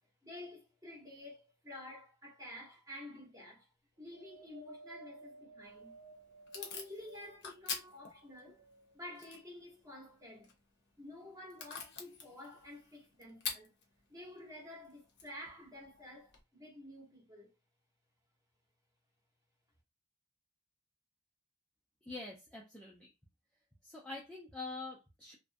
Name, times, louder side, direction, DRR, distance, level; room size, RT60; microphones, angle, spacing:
voice 1, 0.2-3.7 4.0-6.0 6.5-8.6 8.9-10.5 11.0-13.7 14.1-17.5, left 1 dB, 15° right, 0.8 m, -50 dB
Wind, 4.1-7.6 8.2-9.2 10.0-10.1, right 3 dB, 45° right, 0.8 m, -56 dB
Packing tape duct tape / Tearing, 5.6-16.4, left 5 dB, 50° left, 0.6 m, -48 dB
voice 2, 22.0-23.1 23.8-25.4, left 3 dB, 5° left, 0.3 m, -45 dB
2.4 x 2.0 x 2.5 m
head